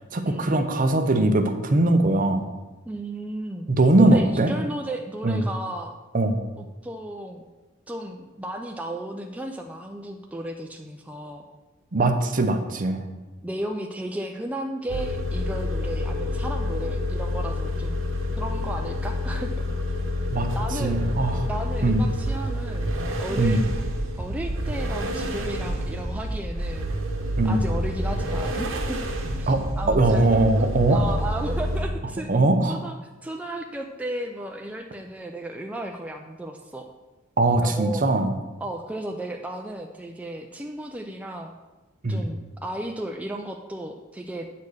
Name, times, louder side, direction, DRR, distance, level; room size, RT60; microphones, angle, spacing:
voice 1, 0.1-2.5 3.7-4.5 5.2-5.4 6.1-6.4 11.9-13.1 20.3-20.5 20.8-21.4 21.8-22.0 23.4-23.6 27.4-27.6 29.5-31.0 32.3-32.8 37.4-38.3 42.0-42.2, right 2 dB, 40° right, 6 dB, 0.7 m, -21 dB
voice 2, 2.9-3.7 4.0-5.9 6.6-7.4 7.9-11.4 13.4-18.0 18.4-19.5 20.5-21.0 21.5-23.6 24.2-26.9 27.4-29.0 29.4-30.2 30.6-32.3 32.7-33.0 33.2-36.9 37.6-38.0 38.6-41.5 42.1-44.5, right 1 dB, 5° right, 2 dB, 0.4 m, -34 dB
sound 1, 14.9-31.8, left 1 dB, 75° right, 1.1 m, -28 dB
8.3 x 4.2 x 6.4 m, 1.1 s
head